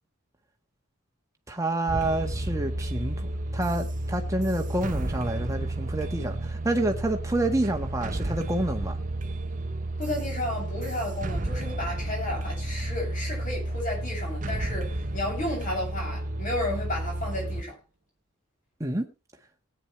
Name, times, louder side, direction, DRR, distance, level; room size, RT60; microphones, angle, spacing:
voice 1, 1.5-9.0 18.8-19.1, right 1 dB, 15° right, 1.6 m, -28 dB
sound 1, 1.9-17.6, right 1 dB, 35° right, 0.9 m, -32 dB
voice 2, 10.0-17.8, left 1 dB, 40° left, 7.3 m, -32 dB
18.5 x 9.5 x 3.3 m
head